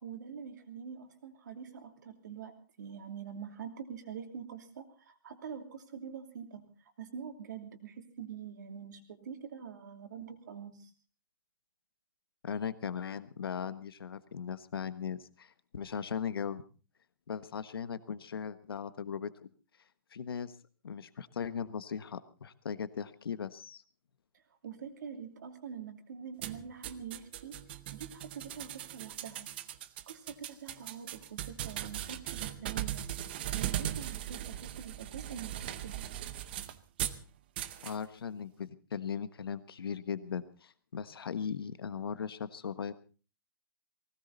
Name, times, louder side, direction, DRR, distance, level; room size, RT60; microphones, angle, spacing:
voice 1, 0.0-6.6 7.0-10.9 24.6-27.6 27.9-29.5 30.1-33.0 33.5-36.1, right 7 dB, 50° right, 6 dB, 2.9 m, -45 dB
voice 2, 12.4-16.6 17.3-19.3 20.1-20.5 20.8-23.8 37.8-42.9, left 7 dB, 85° left, 13 dB, 1.4 m, -38 dB
sound 1, 26.4-37.2 37.6-38.0, right 12 dB, 25° right, 0.7 m, -39 dB
20.0 x 17.5 x 4.0 m, 0.37 s
hypercardioid pair, 175°, 12 cm